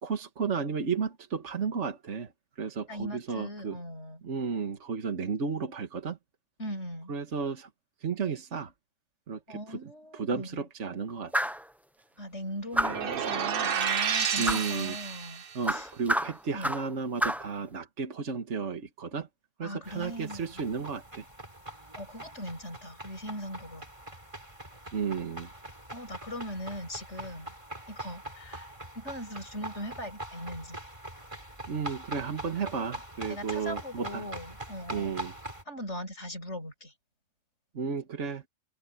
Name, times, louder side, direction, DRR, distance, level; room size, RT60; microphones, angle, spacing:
voice 1, 0.0-3.8 4.2-6.2 7.1-7.7 8.0-8.7 9.3-9.8 10.1-11.5 14.4-15.0 15.5-19.3 19.6-21.2 24.9-25.5 31.7-34.3 34.9-35.4 37.7-38.4, right 5 dB, 65° right, 1.8 m, -33 dB
voice 2, 2.9-4.2 6.6-7.1 9.5-10.6 12.2-15.4 15.7-15.9 16.5-16.7 19.6-20.6 22.0-23.8 25.9-27.5 27.9-30.8 33.3-35.1 35.7-36.9, equal, 60° left, 7.7 m, -40 dB
sound 1, 11.3-11.7 12.7-13.1 14.4-14.7 15.6-16.9 17.2-17.5, equal, ahead, 0.4 m, -29 dB
sound 2, 12.7-15.5, right 7 dB, 50° right, 0.9 m, -30 dB
sound 3, 19.8-35.6, right 2 dB, 25° right, 4.5 m, -43 dB
open air
omnidirectional pair, 1.3 m